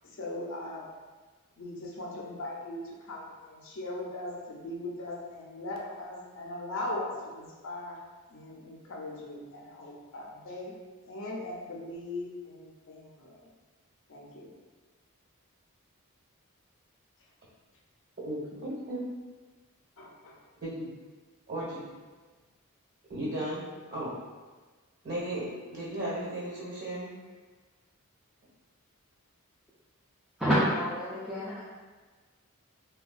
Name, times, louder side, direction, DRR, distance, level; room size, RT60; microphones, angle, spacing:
voice 1, 0.2-0.9 1.6-8.0 8.3-10.7 11.1-13.4 14.1-14.5 20.0-20.4, left 2 dB, 60° left, -2 dB, 0.5 m, -39 dB
voice 2, 18.2-19.0 20.6-20.9 21.5-21.8 23.1-23.6 23.9-24.1 25.0-27.1, right 1 dB, 50° right, -7 dB, 1.2 m, -35 dB
voice 3, 30.4-31.6, equal, ahead, -10 dB, 0.3 m, -27 dB
3.4 x 2.2 x 2.3 m, 1.3 s
head